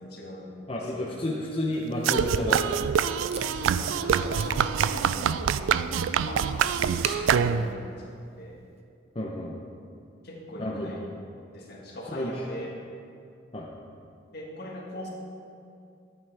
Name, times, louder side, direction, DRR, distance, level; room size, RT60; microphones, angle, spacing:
voice 1, 0.0-1.1 3.3-5.5 5.8-6.0 6.2-8.6 10.2-11.1 11.5-12.8 14.3-15.1, left 1 dB, 55° left, -2 dB, 1.6 m, -41 dB
voice 2, 0.7-2.7 9.2-9.5 10.6-10.9 12.1-12.3 13.5-13.7, left 1 dB, 30° left, -2 dB, 0.7 m, -31 dB
sound 1, 2.0-7.9, right 7 dB, 85° right, 0.3 m, -25 dB
Packing tape duct tape, 2.3-8.8, right 4 dB, 35° right, 0.7 m, -45 dB
10.5 x 9.0 x 3.4 m, 2.5 s
head